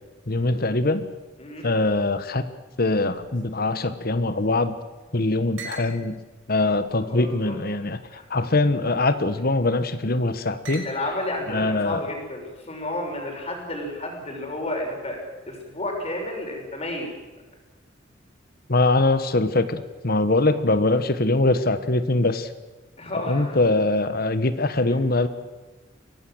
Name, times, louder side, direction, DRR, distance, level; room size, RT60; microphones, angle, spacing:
voice 1, 0.3-1.0 1.6-2.4 2.8-4.7 5.1-6.2 6.5-10.8 11.5-12.0 18.7-22.5 23.1-25.3, left 2 dB, 50° left, 12 dB, 1.3 m, -22 dB
sound 1, 3.0-4.7 5.0-5.1 5.6-5.9 6.7-7.5 8.4-8.8 9.7-10.1 10.6-11.3, right 4 dB, 85° right, 5.7 m, -43 dB
voice 2, 7.0-7.6 8.1-8.2 10.8-17.1 23.0-23.6, left 1 dB, 35° left, 1 dB, 6.3 m, -31 dB
23.5 x 18.0 x 7.9 m, 1.2 s
head